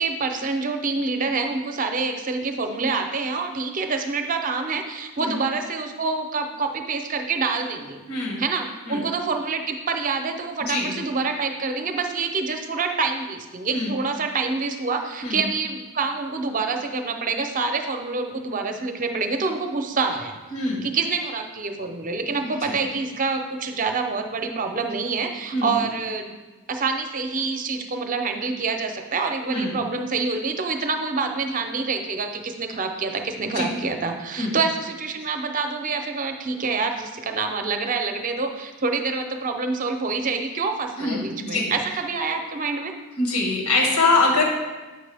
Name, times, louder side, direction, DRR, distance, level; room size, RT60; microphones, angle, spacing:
voice 1, 0.0-8.0 8.4-20.4 20.8-26.3 26.7-42.9, right 4 dB, 35° right, 5 dB, 0.6 m, -26 dB
voice 2, 8.1-8.4 8.9-9.0 10.7-10.9 13.7-13.9 15.2-15.5 20.5-20.8 22.6-22.7 25.5-25.7 29.5-29.8 33.5-33.7 34.4-34.6 41.0-41.7 43.2-44.4, left 3 dB, 85° left, -1 dB, 1.6 m, -23 dB
7.7 x 5.9 x 3.4 m, 1.2 s
head